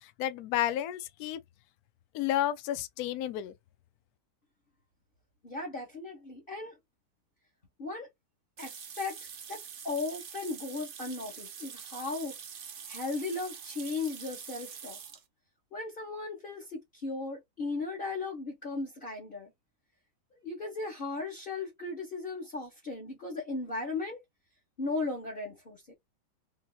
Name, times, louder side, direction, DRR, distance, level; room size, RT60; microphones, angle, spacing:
voice 1, 0.0-1.4 2.1-3.5, left 12 dB, 70° left, 1.0 m, -31 dB
voice 2, 5.4-6.8 7.8-8.1 8.6-9.2 9.5-9.6 9.8-12.3 12.9-15.0 15.7-19.5 20.4-24.2 24.8-25.9, left 3 dB, 35° left, 1.3 m, -36 dB
sound 1, 8.6-15.2, right 7 dB, 90° right, 0.4 m, -45 dB
3.9 x 2.8 x 2.4 m
omnidirectional pair, 1.9 m